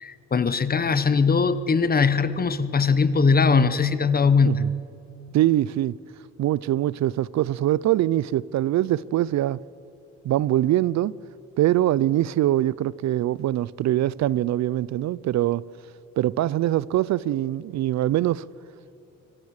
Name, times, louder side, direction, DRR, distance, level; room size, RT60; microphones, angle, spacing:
voice 1, 0.0-4.6, left 5 dB, 30° left, 1.1 m, -20 dB
voice 2, 5.3-6.0 6.4-9.6 10.2-11.1 11.6-15.6 16.2-18.5, right 13 dB, 65° right, 0.5 m, -23 dB
25.0 x 17.0 x 6.6 m
cardioid pair, 90°, 30 cm